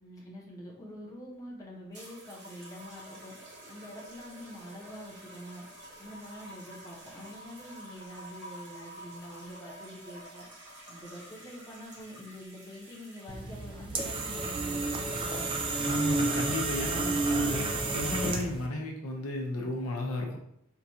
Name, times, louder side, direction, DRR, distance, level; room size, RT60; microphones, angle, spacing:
voice 1, 0.0-3.3 3.7-5.6 6.0-10.5 10.9-15.6, equal, 15° left, -4 dB, 0.8 m, -46 dB
sound 1, 1.9-15.9 16.8-17.2, right 1 dB, 50° right, 1.1 m, -50 dB
sound 2, 13.3-18.7, right 3 dB, 20° right, 0.3 m, -30 dB
voice 2, 15.8-17.7 17.9-20.4, left 2 dB, 75° left, 0 dB, 0.7 m, -33 dB
4.6 x 2.4 x 2.7 m, 0.74 s
head